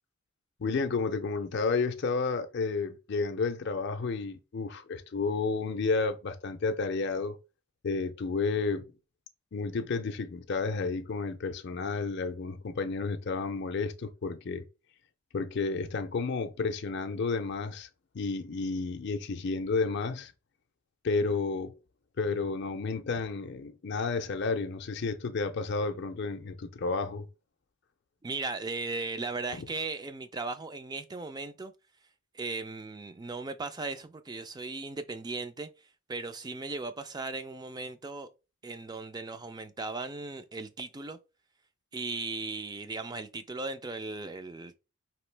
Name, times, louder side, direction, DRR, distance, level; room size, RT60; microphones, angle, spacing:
voice 1, 0.6-7.4 7.8-8.9 9.5-14.7 15.3-17.9 18.1-20.3 21.0-21.7 22.2-27.3 29.5-29.6, left 4 dB, 50° left, 0.4 m, -31 dB
voice 2, 28.2-31.7 32.3-38.3 38.6-41.2 41.9-44.8, right 3 dB, 20° right, 0.3 m, -37 dB
5.0 x 3.0 x 3.2 m
head